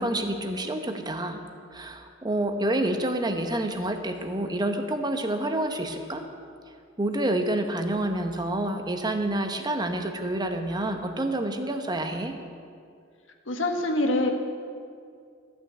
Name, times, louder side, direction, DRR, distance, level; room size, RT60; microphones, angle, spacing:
voice 1, 0.0-1.4 1.7-6.3 7.0-12.4, right 1 dB, 20° right, 6 dB, 0.9 m, -28 dB
voice 2, 13.5-14.3, left 2 dB, 85° left, 4 dB, 1.4 m, -24 dB
13.5 x 6.2 x 8.2 m, 2.3 s
head